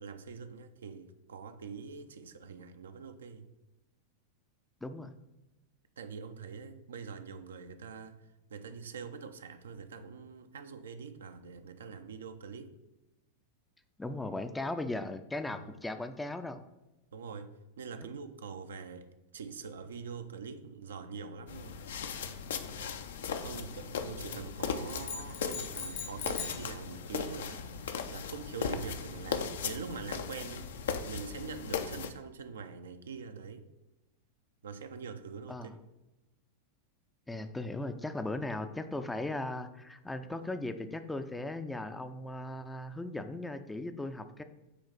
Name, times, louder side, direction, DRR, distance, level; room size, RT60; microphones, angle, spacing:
voice 1, 0.0-3.5 6.0-8.2 8.5-12.7 15.6-15.7 17.1-21.8 23.4-30.7 31.0-33.7 34.6-35.8, right 5 dB, 65° right, 0.5 m, -44 dB
voice 2, 4.8-5.1 14.0-16.6 18.0-18.1 35.5-35.7 37.3-44.4, left 2 dB, 5° left, 0.4 m, -37 dB
sound 1, 21.5-32.1, left 6 dB, 60° left, 0.5 m, -38 dB
sound 2, 24.9-26.7, left 6 dB, 45° left, 1.0 m, -40 dB
8.2 x 3.2 x 5.6 m
figure-of-eight pair, 90°, 0 cm